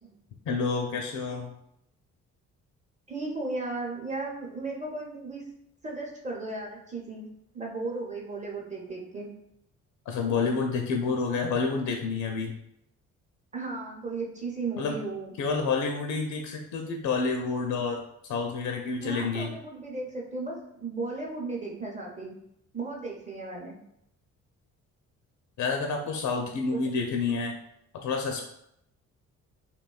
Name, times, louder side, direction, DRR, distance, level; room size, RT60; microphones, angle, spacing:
voice 1, 0.5-1.5 10.1-12.5 14.8-15.0 15.4-19.5 25.6-27.6 28.0-28.5, left 4 dB, 50° left, 3 dB, 0.4 m, -29 dB
voice 2, 3.1-5.4 5.8-7.3 7.5-9.3 13.5-15.3 19.0-22.4 22.7-23.8 26.7-26.8, right 3 dB, 20° right, -1 dB, 0.7 m, -35 dB
2.6 x 2.2 x 2.3 m, 0.76 s
hypercardioid pair, 45°, 40 cm